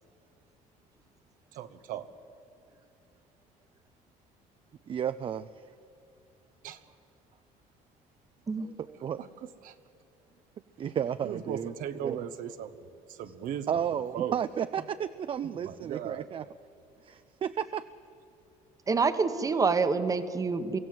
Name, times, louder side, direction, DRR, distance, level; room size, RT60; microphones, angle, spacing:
voice 1, 1.5-2.1 6.6-6.8 9.2-9.3 9.6-9.7 11.2-12.7 13.1-13.7 14.1-14.3 15.6-16.3, right 9 dB, 75° right, 10 dB, 1.1 m, -37 dB
voice 2, 4.9-5.7 8.8-9.2 10.8-11.7 12.0-12.2 13.7-16.5 17.0-17.8, right 9 dB, 40° right, 12 dB, 0.5 m, -33 dB
voice 3, 18.9-20.8, right 4 dB, 25° right, 10 dB, 1.1 m, -27 dB
24.0 x 15.5 x 7.7 m, 2.7 s
cardioid pair, 120°, 14 cm